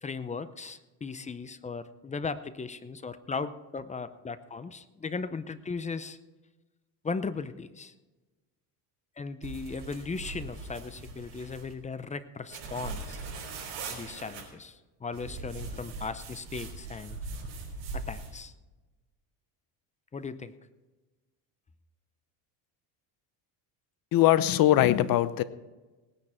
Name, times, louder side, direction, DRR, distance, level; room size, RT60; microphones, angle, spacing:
voice 1, 0.0-6.2 7.0-7.9 9.2-13.2 13.9-17.2 17.9-18.5 20.1-20.5, left 4 dB, 15° left, 13 dB, 0.6 m, -37 dB
sound 1, 9.4-11.7 12.5-14.4 15.1-18.4, right 3 dB, 60° right, 5.1 m, -40 dB
voice 2, 24.1-25.4, left 13 dB, 45° left, 15 dB, 0.8 m, -21 dB
18.5 x 9.8 x 4.4 m, 1.2 s
cardioid pair, 120°, 47 cm